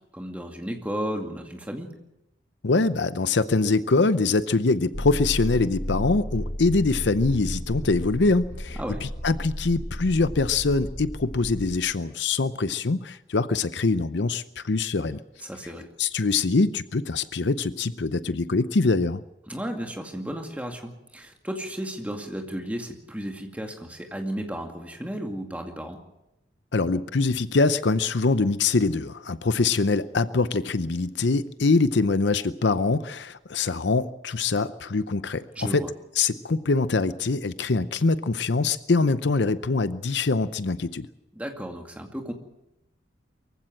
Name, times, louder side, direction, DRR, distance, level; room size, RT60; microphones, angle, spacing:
voice 1, 0.1-1.9 8.8-9.0 15.4-15.9 19.5-26.0 35.5-35.9 41.4-42.3, equal, 10° right, 3 dB, 2.3 m, -34 dB
voice 2, 2.6-15.2 16.0-19.2 26.7-35.8 36.2-41.1, left 3 dB, 65° left, 14 dB, 0.7 m, -24 dB
sound 1, 4.9-11.8, equal, 40° left, 1.8 m, -33 dB
23.5 x 15.5 x 7.8 m, 0.91 s
head